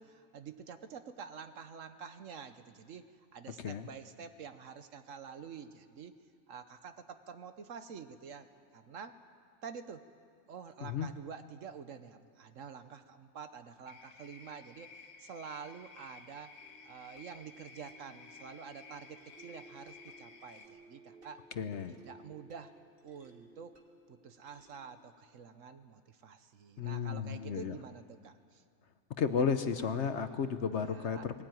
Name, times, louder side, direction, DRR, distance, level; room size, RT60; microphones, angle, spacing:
voice 1, 0.0-3.0 3.3-6.1 6.5-8.5 8.7-9.2 9.6-10.0 10.5-14.9 15.2-16.5 16.8-21.4 21.8-22.7 23.0-23.7 24.1-28.6 30.9-31.3, right 6 dB, 60° right, 10 dB, 1.2 m, -48 dB
sound 1, 13.9-20.7, left 5 dB, 80° left, 2.1 m, -55 dB
sound 2, 16.6-25.1, right 1 dB, 40° right, 2.0 m, -59 dB
voice 2, 21.6-22.0 26.8-27.8 29.2-31.4, left 6 dB, 55° left, 10 dB, 1.0 m, -33 dB
20.5 x 18.0 x 9.2 m, 2.2 s
omnidirectional pair, 1.6 m